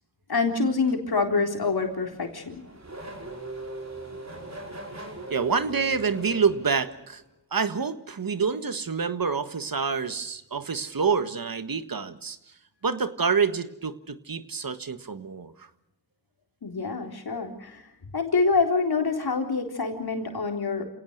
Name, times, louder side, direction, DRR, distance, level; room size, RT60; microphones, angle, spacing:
voice 1, 0.3-2.6 16.6-17.8 18.1-20.8, left 4 dB, 75° left, 4 dB, 3.9 m, -26 dB
Race car auto racing / Accelerating revving vroom, 1.7-7.2, right 2 dB, 45° right, 5.7 m, -40 dB
voice 2, 5.3-7.2 7.5-12.4 12.8-15.7, right 5 dB, 60° right, 11 dB, 1.7 m, -27 dB
28.0 x 18.0 x 6.7 m, 0.81 s
cardioid pair, 45°, 38 cm